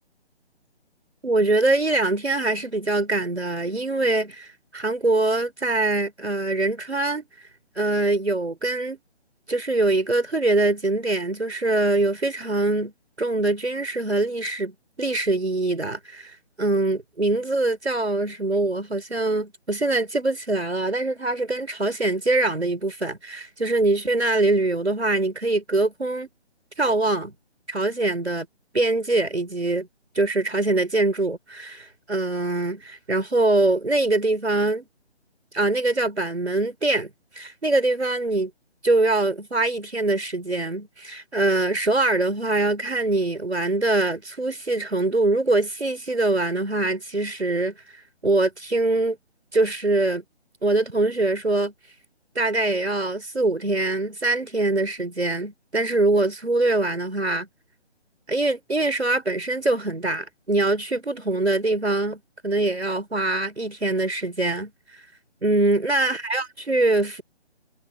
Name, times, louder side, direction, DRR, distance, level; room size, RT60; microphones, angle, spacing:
voice 1, 1.2-7.5 7.8-9.0 9.5-12.9 13.2-26.3 26.8-27.3 27.7-28.5 28.7-29.9 30.1-34.9 35.5-38.5 38.8-49.2 49.5-50.2 50.6-51.7 52.4-57.5 58.3-65.0 65.4-67.2, right 2 dB, 75° right, 5.6 m, -23 dB
figure-of-eight pair, 145°, 33 cm